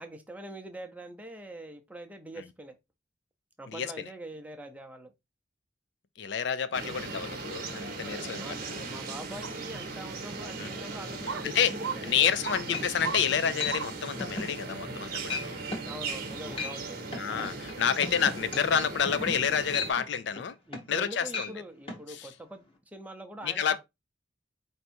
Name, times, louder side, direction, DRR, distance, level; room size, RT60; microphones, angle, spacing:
voice 1, 0.0-2.8 3.6-5.1 8.0-12.4 15.8-17.0 20.7-23.8, right 1 dB, 10° right, 0.6 m, -44 dB
voice 2, 6.2-8.9 10.6-10.7 11.4-11.7 12.1-15.7 17.2-20.5 20.9-21.5 22.1-22.3 23.4-23.8, left 7 dB, 65° left, 0.4 m, -29 dB
sound 1, 6.7-19.9, right 3 dB, 50° right, 0.9 m, -38 dB
sound 2, 9.4-9.5 10.3-10.4 11.3-11.5 11.8-12.0 12.4-12.6 13.0-13.2 13.7-13.9 14.4-14.5, right 6 dB, 80° right, 0.6 m, -34 dB
sound 3, 12.7-13.2 13.6-13.8 14.2-14.5 14.9-15.0 15.3-15.5 15.7-15.9 16.4-16.8 17.1-21.0 21.3-21.5 21.9-22.0, left 3 dB, 30° left, 1.0 m, -36 dB
4.7 x 2.6 x 4.2 m
head